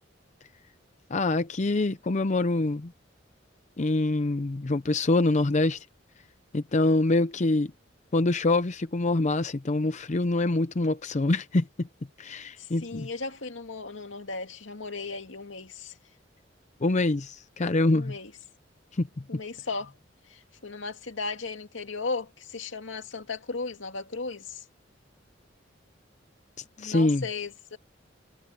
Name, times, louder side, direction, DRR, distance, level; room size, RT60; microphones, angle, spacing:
voice 1, 1.1-2.9 3.8-5.9 6.5-7.7 8.1-11.9 12.2-13.1 16.8-18.1 18.9-19.1 26.8-27.3, left 2 dB, 40° left, 0.6 m, -25 dB
voice 2, 12.6-16.0 17.9-18.3 19.3-19.9 20.3-24.6 26.8-27.8, left 3 dB, 85° left, 2.4 m, -36 dB
head